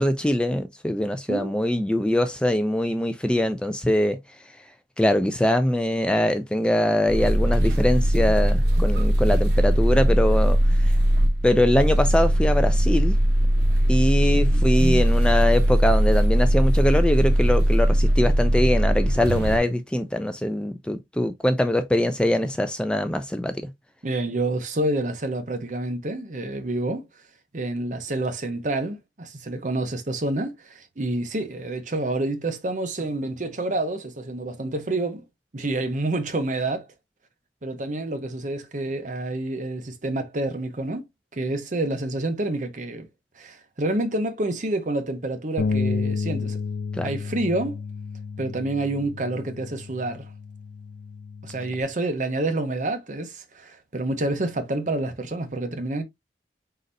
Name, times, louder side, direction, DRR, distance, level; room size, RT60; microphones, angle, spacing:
voice 1, 0.0-4.2 5.0-10.6 10.8-10.9 11.4-13.1 13.9-23.5 47.0-47.1, left 1 dB, 5° left, 0.3 m, -22 dB
sound 1, 7.1-19.6, right 1 dB, 70° right, 0.9 m, -20 dB
voice 2, 14.3-15.0 24.0-27.1 27.5-35.2 35.5-36.9 37.6-41.0 41.3-43.1 43.4-46.6 47.0-47.8 48.4-50.3 51.4-56.0, right 2 dB, 45° right, 0.8 m, -28 dB
Bass guitar, 45.6-51.8, left 4 dB, 70° left, 0.4 m, -31 dB
4.2 x 3.9 x 2.6 m
head